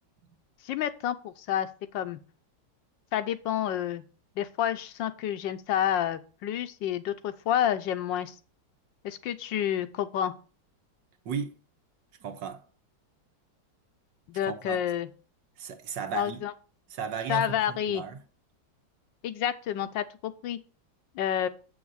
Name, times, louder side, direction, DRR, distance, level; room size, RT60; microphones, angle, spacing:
voice 1, 0.6-1.7 1.9-2.2 3.1-4.0 4.4-8.3 9.0-10.3 14.3-15.1 16.1-16.5 17.3-18.0 19.2-20.6 21.1-21.5, left 10 dB, 80° left, 1.4 m, -29 dB
voice 2, 11.3-11.6 12.2-12.6 14.5-14.8 15.6-16.5 16.9-18.2, right 6 dB, 80° right, 1.8 m, -35 dB
7.9 x 6.0 x 4.0 m
omnidirectional pair, 2.0 m